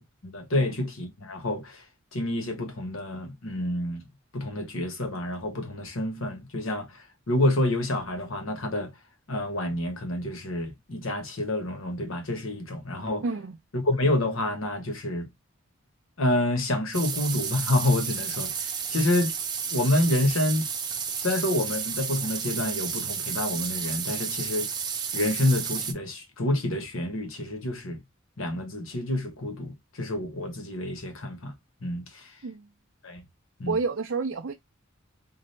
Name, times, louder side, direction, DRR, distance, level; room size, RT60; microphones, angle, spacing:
voice 1, 0.2-1.8 2.1-4.0 4.3-8.9 9.3-13.2 13.7-15.3 16.2-19.3 19.7-20.7 21.2-24.7 25.1-28.0 28.4-31.5 31.8-32.3 33.0-33.2 33.6-33.8, left 1 dB, 75° left, 1.1 m, -28 dB
voice 2, 13.2-13.5 32.4-32.7 33.7-34.5, right 4 dB, 65° right, 0.5 m, -29 dB
sound 1, 16.9-25.9, right 7 dB, 20° right, 0.5 m, -32 dB
4.0 x 2.5 x 3.2 m
head